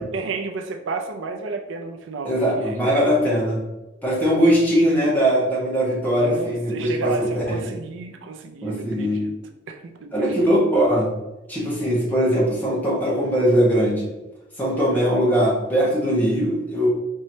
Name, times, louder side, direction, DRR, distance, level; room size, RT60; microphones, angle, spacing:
voice 1, 0.1-2.8 6.1-9.3 9.7-10.6, right 3 dB, 80° right, 4 dB, 0.5 m, -31 dB
voice 2, 2.2-3.6 4.0-7.8 8.6-9.3 10.1-11.1 11.5-14.1 14.6-16.9, equal, 10° left, -7 dB, 1.3 m, -20 dB
4.5 x 3.1 x 2.8 m, 1.0 s
head